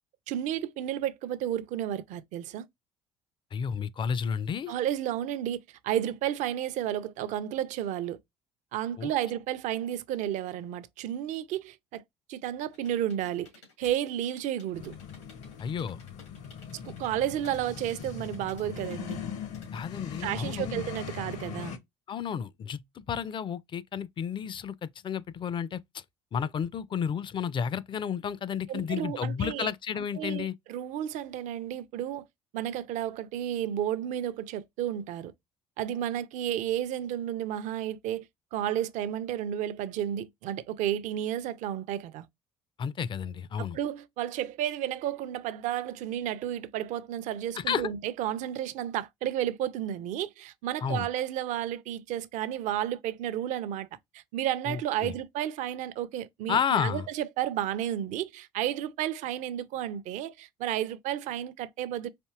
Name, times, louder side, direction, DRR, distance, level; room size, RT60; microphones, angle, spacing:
voice 1, 0.3-2.7 4.7-8.2 8.7-12.0 12.3-13.5 13.8-14.9 16.9-19.2 20.2-21.8 28.7-29.7 30.2-32.3 32.5-35.3 35.8-38.3 38.5-42.3 43.7-53.9 54.1-62.1, right 11 dB, 60° right, 0.5 m, -32 dB
voice 2, 3.5-4.7 9.0-9.1 15.6-16.0 19.7-20.8 22.1-26.0 26.3-30.5 42.8-43.8 47.6-47.9 50.8-51.1 54.7-55.1 56.5-57.1, left 7 dB, 35° left, 0.4 m, -32 dB
sound 1, 12.7-19.8, left 3 dB, 90° left, 2.1 m, -56 dB
sound 2, 14.7-21.8, left 7 dB, 60° left, 0.7 m, -40 dB
4.4 x 2.7 x 2.3 m
hypercardioid pair, 60°, 14 cm